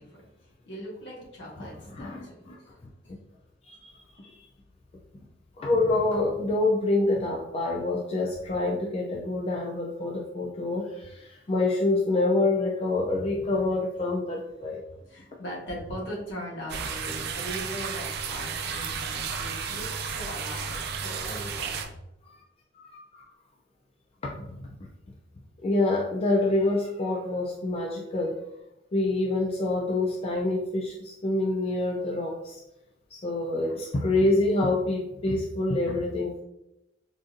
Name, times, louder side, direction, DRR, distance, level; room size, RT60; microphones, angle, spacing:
voice 1, 0.0-2.8 3.0-3.1 11.3-11.4 13.4-13.7 14.9-22.0, equal, 70° left, -4 dB, 1.2 m, -40 dB
voice 2, 1.6-2.6 3.6-4.0 5.6-14.8 19.6-19.7 22.2-22.3 22.7-23.3 24.2-24.6 25.6-28.4 28.9-32.6 33.1-36.4, left 2 dB, 30° left, -2 dB, 0.4 m, -27 dB
Water in drainage pipe, 16.7-21.9, right 6 dB, 60° right, 0.4 m, -33 dB
3.7 x 2.6 x 2.5 m, 0.87 s
head